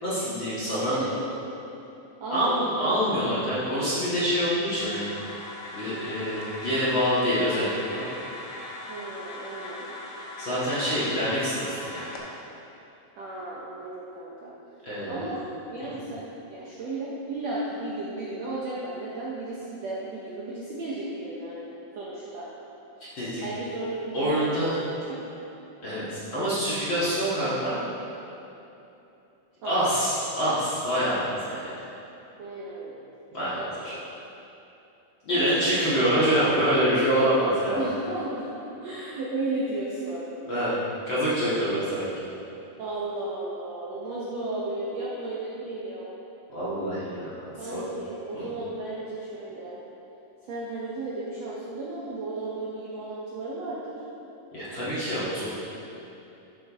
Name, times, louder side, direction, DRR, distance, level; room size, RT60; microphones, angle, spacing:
voice 1, 0.0-1.0 2.3-5.1 5.7-7.7 7.9-8.0 10.4-12.1 14.8-15.2 23.2-23.4 24.1-24.8 25.8-27.8 29.6-31.7 33.3-33.9 35.2-37.9 40.5-40.7 41.1-42.1 46.5-47.4 47.7-47.9 48.3-48.5 54.5-55.5, equal, 45° left, -11 dB, 1.9 m, -26 dB
voice 2, 0.8-1.2 2.2-2.8 8.9-10.0 13.2-14.5 15.1-15.4 15.7-22.5 23.4-24.8 25.1-25.4 27.3-27.5 29.6-29.8 32.4-33.1 33.6-33.9 35.3-36.2 37.7-38.5 38.8-40.3 42.8-46.1 47.6-49.8 50.5-54.0 55.1-55.5, right 2 dB, 70° right, -6 dB, 1.6 m, -34 dB
sound 1, 4.8-12.2, left 2 dB, 65° left, 1.4 m, -40 dB
12.5 x 7.7 x 3.7 m, 2.8 s
omnidirectional pair, 4.4 m